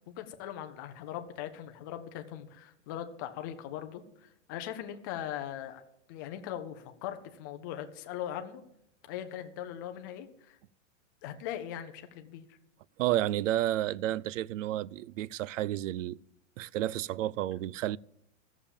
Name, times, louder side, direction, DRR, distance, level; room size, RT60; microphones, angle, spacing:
voice 1, 0.0-5.8 6.1-8.6 9.1-10.6 11.2-12.5, left 10 dB, 15° left, 0.4 m, -40 dB
voice 2, 13.0-16.2 16.6-18.0, right 13 dB, 80° right, 0.5 m, -31 dB
14.0 x 7.1 x 7.0 m
supercardioid pair, 175°, 38 cm